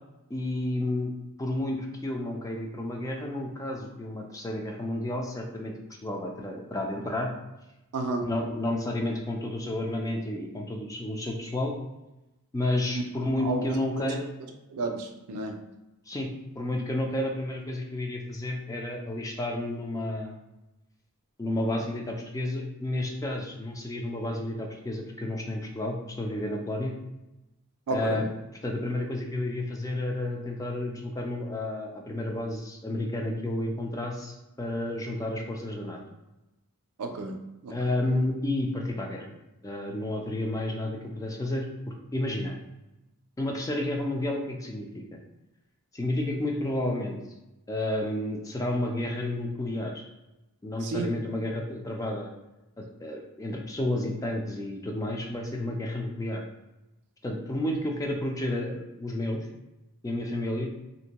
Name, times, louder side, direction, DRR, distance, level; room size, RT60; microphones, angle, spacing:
voice 1, 0.3-1.1 1.4-7.3 8.2-11.7 12.5-14.3 16.1-16.3 16.6-20.4 21.4-26.9 27.9-28.3 28.6-36.0 37.7-39.3 39.6-42.5 43.4-44.9 45.9-47.2 47.7-50.0 50.6-52.3 52.8-56.4 57.2-59.5 60.0-60.7, left 1 dB, 15° left, 1 dB, 0.3 m, -31 dB
voice 2, 7.9-8.2 12.9-13.0 13.4-14.1 14.7-15.6 27.9-28.2 37.0-37.7 50.8-51.1, right 3 dB, 90° right, 5 dB, 0.4 m, -32 dB
2.6 x 2.1 x 2.9 m, 0.96 s
head